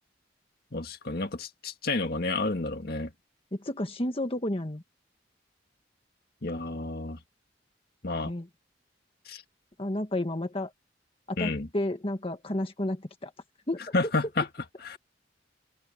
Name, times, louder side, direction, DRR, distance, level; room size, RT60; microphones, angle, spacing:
voice 1, 0.7-3.1 6.4-7.2 8.0-8.3 9.3-9.4 11.4-11.7 13.9-14.5 14.8-15.0, left 3 dB, 55° left, 1.9 m, -30 dB
voice 2, 3.5-4.8 8.3-8.5 9.8-10.7 11.3-13.3 13.7-13.8, left 1 dB, 30° left, 1.7 m, -31 dB
open air
head